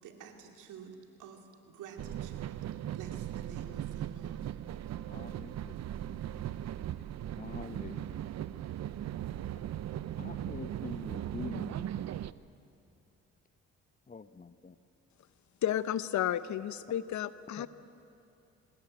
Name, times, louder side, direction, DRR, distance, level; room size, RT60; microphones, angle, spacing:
voice 1, 0.0-2.6 2.9-4.4, right 6 dB, 85° right, 4 dB, 2.8 m, -50 dB
sound 1, 2.0-12.3, right 11 dB, 60° right, 0.7 m, -38 dB
voice 2, 5.1-6.1 6.5-6.6 7.0-7.1 7.4-8.5 10.2-11.9 14.1-14.7 17.6-17.7, left 4 dB, 25° left, 12 dB, 1.0 m, -45 dB
voice 3, 15.6-17.7, left 11 dB, 70° left, 14 dB, 1.0 m, -32 dB
26.5 x 20.0 x 8.9 m, 2.6 s
cardioid pair, 90°, 30 cm